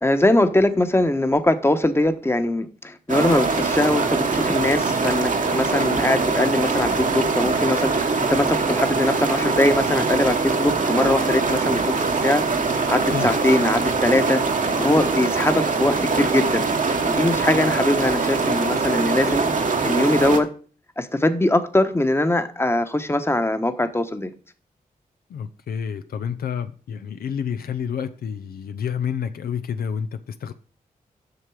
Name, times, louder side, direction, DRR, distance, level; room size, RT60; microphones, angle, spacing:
voice 1, 0.0-12.4 12.9-14.4 14.8-16.7 17.0-19.4 19.8-20.5 21.0-24.3, left 1 dB, 15° left, 1.1 m, -21 dB
sound 1, 3.1-20.4, right 4 dB, 55° right, 1.2 m, -22 dB
voice 2, 25.3-30.5, left 7 dB, 80° left, 0.5 m, -29 dB
7.9 x 5.9 x 4.8 m
cardioid pair, 50°, 15 cm